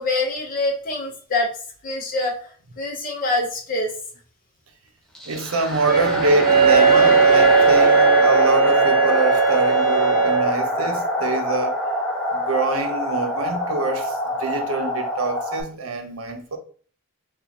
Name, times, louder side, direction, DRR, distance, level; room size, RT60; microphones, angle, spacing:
voice 1, 0.0-1.5 1.8-2.4 2.8-3.9, left 2 dB, 40° left, 0.8 m, -24 dB
sound 1, 5.1-15.6, left 1 dB, 5° left, 0.5 m, -24 dB
voice 2, 5.3-11.8 12.3-16.6, right 2 dB, 85° right, 0.7 m, -25 dB
Wind instrument woodwind instrument, 5.9-10.5, right 5 dB, 50° right, 0.8 m, -17 dB
2.9 x 2.4 x 3.9 m
head